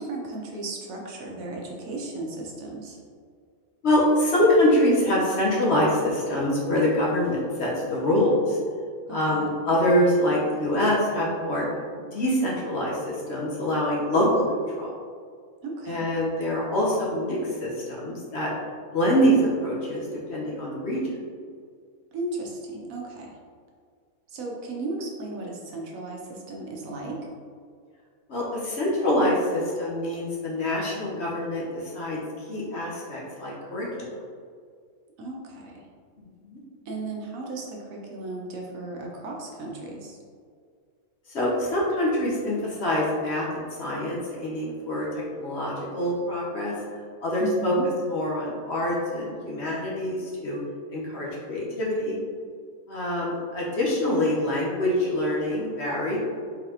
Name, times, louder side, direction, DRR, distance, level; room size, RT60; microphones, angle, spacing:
voice 1, 0.1-3.0 9.1-9.5 15.6-16.1 22.1-23.3 24.3-27.2 35.2-35.8 36.9-40.2 47.4-47.9, right 2 dB, 70° right, -1 dB, 1.1 m, -35 dB
voice 2, 3.8-8.6 9.1-11.7 12.0-14.4 14.8-14.9 15.9-18.5 18.9-21.0 28.3-34.1 36.4-36.6 41.3-45.1 45.3-46.7 47.2-47.7 48.1-50.6 50.9-52.2 52.9-56.2, left 1 dB, 55° left, -4 dB, 1.0 m, -25 dB
4.0 x 3.8 x 2.8 m, 2.1 s
omnidirectional pair, 1.5 m